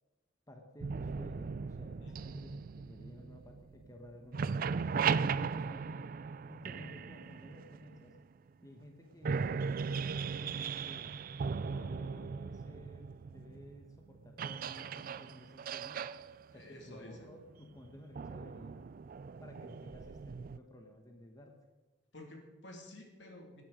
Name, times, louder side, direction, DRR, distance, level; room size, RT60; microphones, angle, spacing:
voice 1, 0.5-4.5 5.1-6.0 6.5-8.1 8.6-11.1 11.6-16.1 16.5-18.9 19.4-21.6, left 1 dB, 20° left, 3 dB, 1.2 m, -54 dB
sound 1, 0.8-4.0 4.2-8.2 8.8-8.9 9.2-20.6, right 5 dB, 50° right, 0.4 m, -38 dB
voice 2, 2.0-2.4 16.5-17.3 22.1-23.6, left 1 dB, 70° left, 2 dB, 2.7 m, -51 dB
17.0 x 9.3 x 5.1 m, 1.2 s
head